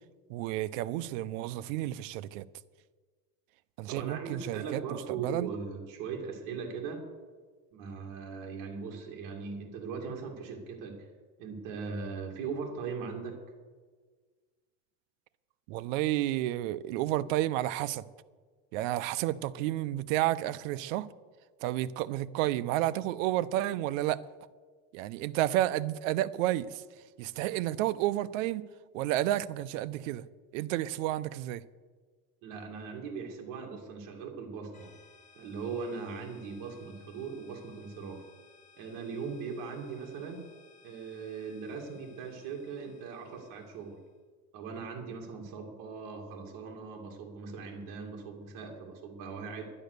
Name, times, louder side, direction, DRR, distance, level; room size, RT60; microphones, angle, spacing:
voice 1, 0.3-2.5 3.8-5.5 15.7-18.0 18.7-21.1 21.6-24.2 24.9-26.8 27.2-28.6 28.9-30.3 30.5-31.6, right 14 dB, 85° right, 0.7 m, -31 dB
voice 2, 3.9-7.0 7.7-11.1 11.4-13.4 32.4-34.9 35.4-38.2 38.8-40.4 40.8-44.0 44.5-49.6, right 5 dB, 55° right, 2.5 m, -39 dB
sound 1, 34.7-44.1, left 5 dB, 20° left, 2.8 m, -61 dB
11.0 x 10.5 x 6.6 m
cardioid pair, 145°, 38 cm